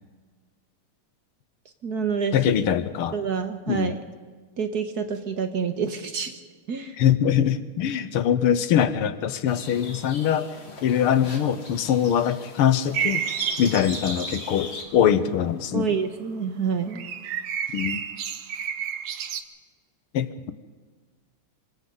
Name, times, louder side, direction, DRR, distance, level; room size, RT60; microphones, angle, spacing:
voice 1, 1.8-2.3 3.1-4.0 4.6-6.4 6.7-6.9 15.7-17.1, right 6 dB, 50° right, 7 dB, 1.6 m, -27 dB
voice 2, 2.3-3.2 3.7-4.0 7.0-10.5 10.8-13.2 13.6-15.9 17.7-18.0 20.1-20.5, left 9 dB, 80° left, 12 dB, 1.9 m, -23 dB
sound 1, 9.5-14.8, left 3 dB, 60° left, 3.2 m, -40 dB
sound 2, 12.9-14.5 16.9-19.4, right 8 dB, 65° right, 1.7 m, -30 dB
26.5 x 24.5 x 4.0 m, 1.5 s
omnidirectional pair, 2.4 m